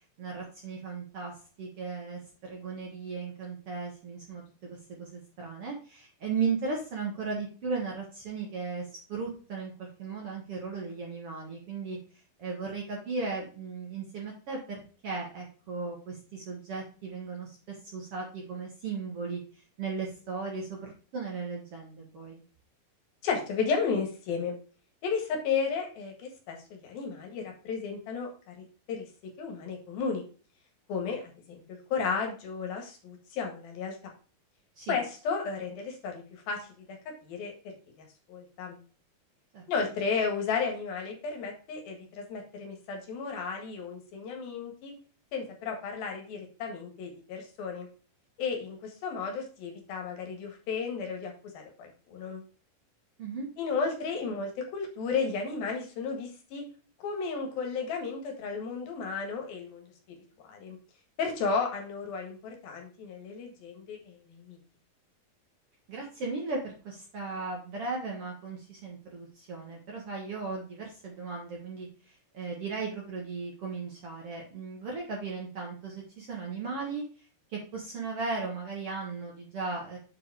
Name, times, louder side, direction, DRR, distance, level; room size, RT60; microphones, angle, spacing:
voice 1, 0.2-1.3 1.6-12.0 12.4-19.4 19.8-22.4 34.8-35.0 39.5-39.6 53.2-53.5 65.9-71.9 72.3-77.0 77.5-80.0, right 4 dB, 50° right, -1 dB, 1.9 m, -36 dB
voice 2, 23.2-24.5 25.0-29.1 29.4-30.2 30.9-34.0 34.9-37.0 37.2-38.8 39.7-44.9 45.3-47.9 48.4-52.4 53.6-56.6 57.0-59.8 60.4-60.8 61.2-64.6, left 5 dB, 75° left, 2 dB, 3.4 m, -33 dB
7.6 x 4.8 x 4.8 m, 0.37 s
omnidirectional pair, 4.4 m